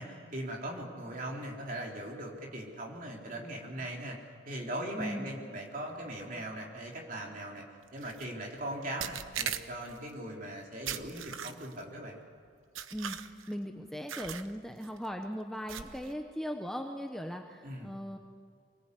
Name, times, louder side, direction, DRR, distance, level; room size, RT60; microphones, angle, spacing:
voice 1, 0.0-4.2 4.5-7.7 7.9-12.2 17.6-17.9, right 1 dB, 40° right, -1 dB, 3.7 m, -40 dB
voice 2, 4.9-5.3 12.9-13.2 13.5-18.2, equal, ahead, 3 dB, 0.8 m, -38 dB
sound 1, 8.0-8.2 9.0-10.0 10.9-11.8 12.8-13.5 14.1-14.5 14.8-15.1 15.7-16.1, right 9 dB, 85° right, 1.0 m, -39 dB
25.0 x 19.5 x 8.4 m, 2.2 s
head